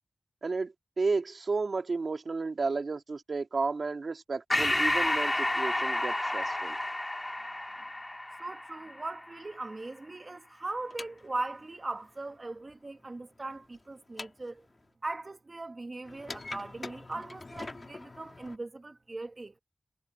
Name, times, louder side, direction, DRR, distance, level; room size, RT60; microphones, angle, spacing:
voice 1, 0.4-6.8, right 4 dB, 55° right, 1.8 m, -32 dB
Breathing, 4.5-9.4, left 1 dB, 20° left, 1.9 m, -30 dB
voice 2, 8.4-14.7 15.0-19.6, right 2 dB, 35° right, 1.6 m, -39 dB
sound 1, 10.8-14.9 16.0-18.6, left 2 dB, 40° left, 2.1 m, -45 dB
wide cardioid pair, 85°, 0 cm